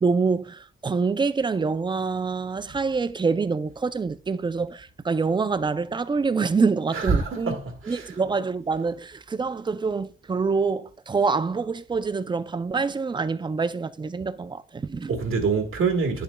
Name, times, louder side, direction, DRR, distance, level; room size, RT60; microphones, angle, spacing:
voice 1, 0.0-7.6 7.9-15.1, right 4 dB, 20° right, 0.4 m, -26 dB
voice 2, 6.9-8.1 15.1-16.2, right 5 dB, 85° right, 1.4 m, -25 dB
9.7 x 6.8 x 2.2 m
wide cardioid pair, 125°, 21 cm